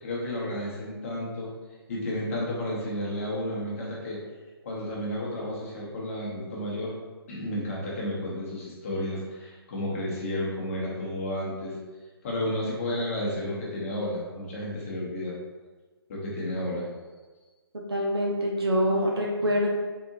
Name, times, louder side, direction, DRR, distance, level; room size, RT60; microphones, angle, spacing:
voice 1, 0.0-1.5 1.9-4.2 4.6-6.9 7.3-11.8 12.2-15.3 16.1-16.9, left 1 dB, 35° left, -4 dB, 1.0 m, -32 dB
voice 2, 17.7-19.7, equal, 70° right, -2 dB, 0.8 m, -25 dB
3.7 x 2.7 x 2.7 m, 1.3 s
figure-of-eight pair, 140°, 14 cm